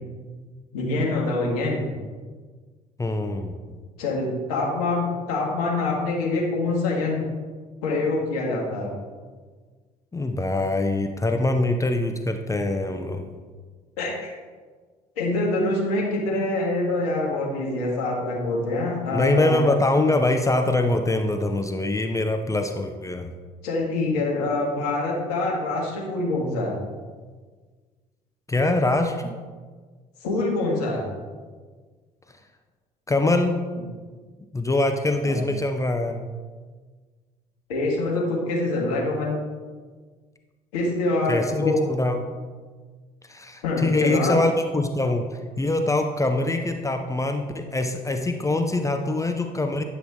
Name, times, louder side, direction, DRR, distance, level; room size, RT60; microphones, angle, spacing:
voice 1, 0.7-1.9 4.0-7.2 7.8-8.9 14.0-14.3 15.2-19.7 23.6-26.8 30.2-31.1 35.2-35.4 37.7-39.3 40.7-41.9 43.6-44.4, left 2 dB, 75° left, -2 dB, 1.7 m, -25 dB
voice 2, 3.0-3.5 10.1-13.3 19.1-23.3 28.5-29.3 33.1-33.6 34.5-36.3 41.3-42.3 43.3-49.8, left 2 dB, 15° left, 5 dB, 0.6 m, -24 dB
10.0 x 5.9 x 3.6 m, 1.5 s
figure-of-eight pair, 55°, 20 cm